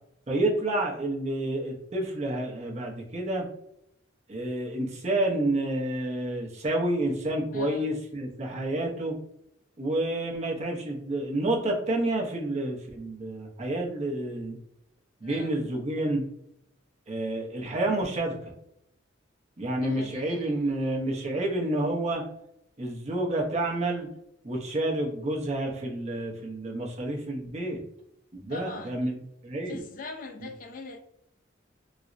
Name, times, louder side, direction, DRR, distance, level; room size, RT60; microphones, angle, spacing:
voice 1, 0.3-3.4 4.3-9.1 9.8-14.6 15.2-16.2 17.1-18.3 19.6-22.2 22.8-24.1 24.4-27.8 28.3-29.1 29.4-29.8, right 1 dB, 35° right, -1 dB, 0.6 m, -29 dB
voice 2, 7.5-7.9 15.2-15.6 19.8-20.5 28.5-29.0 29.7-31.0, left 3 dB, 45° left, 4 dB, 0.3 m, -42 dB
3.9 x 2.0 x 2.4 m, 0.78 s
head